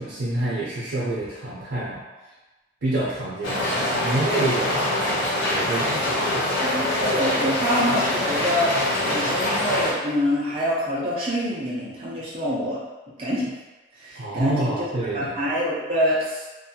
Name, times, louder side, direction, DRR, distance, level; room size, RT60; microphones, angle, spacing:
voice 1, 0.0-2.0 2.8-4.9 5.5-6.6 14.2-15.5, right 2 dB, 75° right, -7 dB, 0.6 m, -28 dB
sound 1, 3.4-9.9, left 1 dB, 90° left, 0.7 m, -24 dB
voice 2, 6.6-12.8 13.2-13.5 14.0-14.8 15.1-16.6, equal, 30° right, -8 dB, 0.6 m, -26 dB
2.6 x 2.2 x 2.7 m, 1.1 s
head